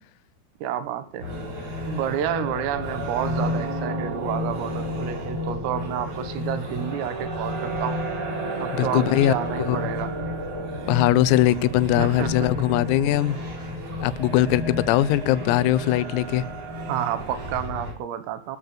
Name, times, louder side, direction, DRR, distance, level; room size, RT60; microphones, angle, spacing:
voice 1, 0.6-1.3 1.9-8.0 8.6-10.1 12.0-12.7 16.9-18.6, right 10 dB, 80° right, 12 dB, 4.0 m, -30 dB
sound 1, 1.2-17.9, equal, 30° right, 4.6 m, -31 dB
voice 2, 8.7-9.3 9.7-9.8 10.9-13.4 14.0-16.5, left 13 dB, 85° left, 17 dB, 3.6 m, -21 dB
26.5 x 13.5 x 2.2 m, 0.29 s
omnidirectional pair, 6.0 m